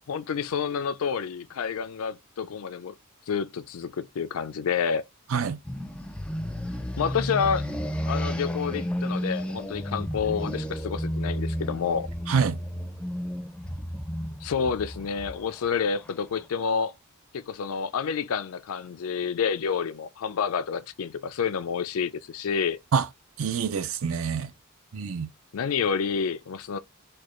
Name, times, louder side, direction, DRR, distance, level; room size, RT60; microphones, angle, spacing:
voice 1, 0.1-2.9 3.3-5.0 7.0-7.7 8.1-12.1 14.4-16.9 17.3-22.8 25.5-26.8, left 6 dB, 80° left, 0.4 m, -29 dB
sound 1, 5.6-16.4, equal, 5° left, 0.4 m, -32 dB
voice 2, 12.3-12.6 22.9-23.1 23.4-24.5 24.9-25.3, right 6 dB, 70° right, 0.5 m, -26 dB
4.4 x 2.3 x 3.0 m
head